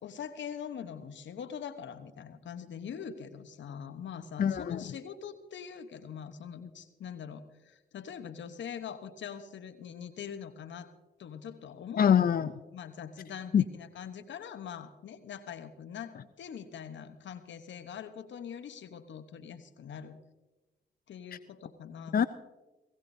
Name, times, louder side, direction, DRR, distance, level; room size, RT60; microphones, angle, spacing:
voice 1, 0.0-10.9 11.2-12.1 12.7-20.2 21.1-22.3, left 8 dB, 75° left, 11 dB, 1.0 m, -43 dB
voice 2, 4.4-4.8 12.0-12.5 13.5-13.6 22.1-22.3, left 8 dB, 50° left, 14 dB, 0.5 m, -24 dB
19.5 x 16.5 x 2.7 m, 1.1 s
supercardioid pair, 45°, 19 cm